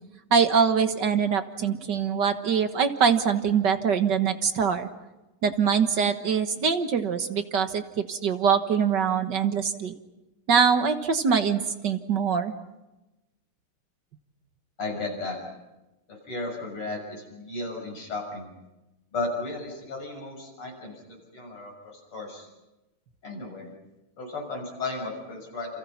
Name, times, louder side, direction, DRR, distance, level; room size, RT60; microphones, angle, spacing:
voice 1, 0.3-4.9 5.4-9.9 10.5-12.6, right 6 dB, 55° right, 8 dB, 1.9 m, -23 dB
voice 2, 14.8-15.4 16.1-18.5 19.1-22.5 23.2-23.7 24.2-25.8, left 2 dB, 85° left, 0 dB, 7.8 m, -34 dB
29.0 x 28.5 x 5.9 m, 1.0 s
omnidirectional pair, 2.4 m